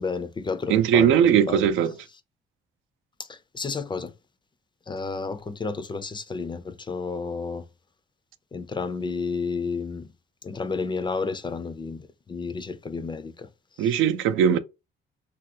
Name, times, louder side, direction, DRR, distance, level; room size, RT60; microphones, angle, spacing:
voice 1, 0.0-1.7 3.2-4.1 4.9-7.7 8.5-10.1 10.4-13.5 13.8-14.0, left 4 dB, 25° left, 0.4 m, -31 dB
voice 2, 0.7-1.9 13.8-14.6, right 9 dB, 85° right, 0.4 m, -19 dB
3.2 x 2.4 x 2.7 m
cardioid pair, 90°, 20 cm